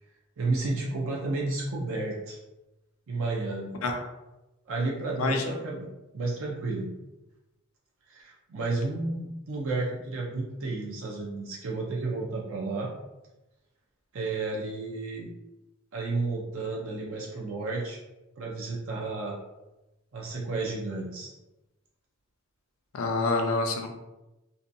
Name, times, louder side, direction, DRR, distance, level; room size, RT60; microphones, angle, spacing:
voice 1, 0.4-2.4 3.1-3.8 4.7-5.9 6.1-6.9 8.1-12.9 14.1-15.3 15.9-18.0 18.4-19.4 20.1-21.3, right 3 dB, 70° right, -2 dB, 0.5 m, -32 dB
voice 2, 22.9-24.0, left 3 dB, 80° left, 4 dB, 0.4 m, -27 dB
2.7 x 2.2 x 2.5 m, 1.0 s
head